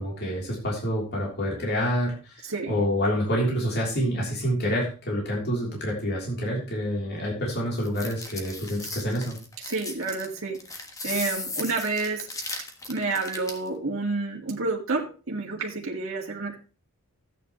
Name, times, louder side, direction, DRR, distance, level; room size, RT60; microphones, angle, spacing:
voice 1, 0.0-9.4, equal, 45° left, -3 dB, 3.3 m, -27 dB
voice 2, 2.4-2.8 9.6-10.6 11.0-12.3 12.9-16.6, right 3 dB, 60° right, -2 dB, 1.9 m, -29 dB
sound 1, 7.8-13.7, left 2 dB, 15° left, 1.3 m, -36 dB
14.0 x 9.1 x 3.1 m, 0.33 s
head